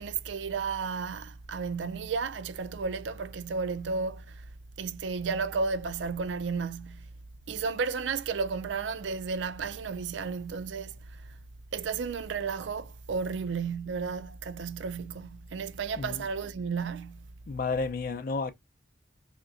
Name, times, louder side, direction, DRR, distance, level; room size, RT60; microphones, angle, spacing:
voice 1, 0.0-4.5 4.8-7.1 7.5-11.0 11.7-17.3, right 5 dB, 75° right, 0.4 m, -33 dB
voice 2, 17.5-18.5, left 4 dB, 50° left, 0.5 m, -31 dB
3.2 x 2.8 x 2.5 m
head